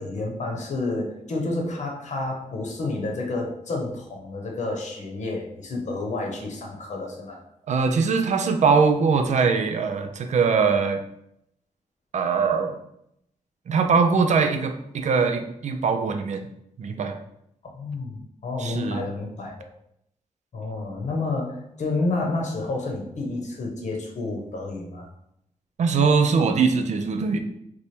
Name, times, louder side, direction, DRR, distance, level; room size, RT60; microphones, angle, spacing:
voice 1, 0.0-7.4 17.7-19.7 20.5-25.1, left 2 dB, 65° left, 0 dB, 0.8 m, -30 dB
voice 2, 7.7-11.0 12.1-12.8 13.7-16.4 16.8-17.2 18.6-19.1 25.8-27.4, right 5 dB, 65° right, 6 dB, 0.4 m, -22 dB
3.2 x 2.2 x 4.2 m, 0.77 s
wide cardioid pair, 125°, 13 cm